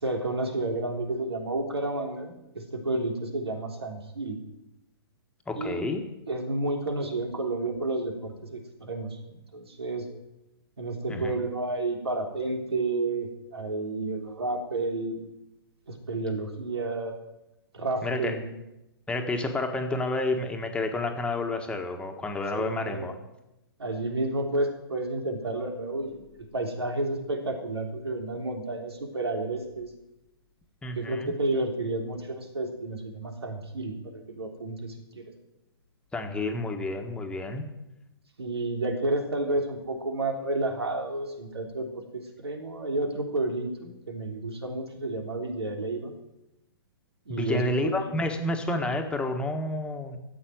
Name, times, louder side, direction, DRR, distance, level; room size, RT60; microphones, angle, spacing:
voice 1, 0.0-4.4 5.5-6.0 6.3-10.1 10.8-15.3 15.9-17.2 17.7-18.5 22.6-23.1 23.8-26.2 26.5-29.9 30.9-35.2 38.4-46.1 47.2-48.1, right 2 dB, 90° right, 4 dB, 3.5 m, -31 dB
voice 2, 5.5-6.0 11.1-11.3 18.0-18.4 19.1-23.1 30.8-31.3 36.1-37.6 47.3-50.2, left 2 dB, 10° left, 3 dB, 1.6 m, -30 dB
14.0 x 8.2 x 9.4 m, 0.92 s
hypercardioid pair, 130°, 13 cm